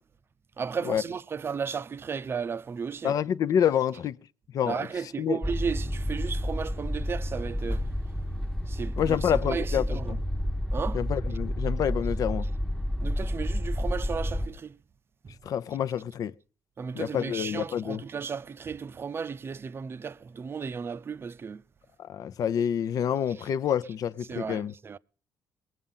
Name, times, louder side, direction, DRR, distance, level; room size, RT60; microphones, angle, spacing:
voice 1, 0.6-3.2 4.7-7.8 8.7-10.1 10.7-11.0 13.0-14.8 15.2-15.3 16.8-21.6 24.3-25.0, right 6 dB, 35° right, 0.6 m, -34 dB
voice 2, 3.0-4.2 4.5-4.9 5.2-5.4 9.0-10.2 10.9-12.4 15.4-16.3 16.9-18.0 22.1-24.7, left 9 dB, 60° left, 0.7 m, -27 dB
sound 1, 5.4-14.5, equal, 5° left, 0.9 m, -30 dB
21.0 x 7.6 x 5.5 m
cardioid pair, 100°, 7 cm